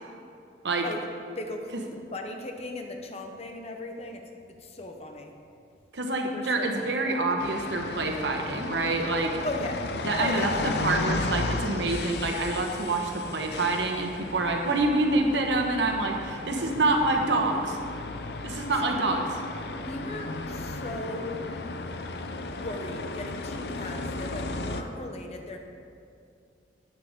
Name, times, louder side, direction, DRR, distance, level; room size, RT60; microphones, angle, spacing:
voice 1, 1.4-1.7 2.1-4.2 4.6-5.3 6.3-7.2 9.4-9.9 10.2-10.6 18.8-18.9 19.7-21.4 22.5-25.6, left 1 dB, 35° left, 4 dB, 0.9 m, -37 dB
voice 2, 5.9-9.4 10.0-17.8 18.4-19.2, right 2 dB, 80° right, 2 dB, 1.2 m, -26 dB
sound 1, 7.4-24.8, left 3 dB, 65° left, 0.6 m, -34 dB
11.5 x 9.7 x 3.7 m, 2.4 s
head